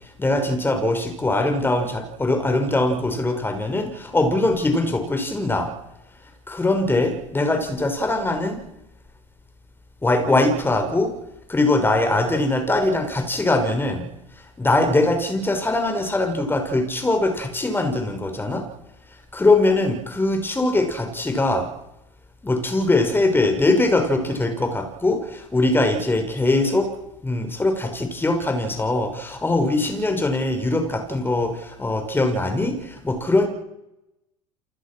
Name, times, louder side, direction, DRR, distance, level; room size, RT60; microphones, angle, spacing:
voice 1, 0.2-5.7 6.5-8.6 10.0-11.2 11.5-14.1 14.6-18.7 19.3-21.7 22.4-26.9 27.2-33.5, left 2 dB, 15° left, 6 dB, 6.0 m, -22 dB
29.5 x 21.0 x 6.3 m, 0.87 s
figure-of-eight pair, 70°, 17 cm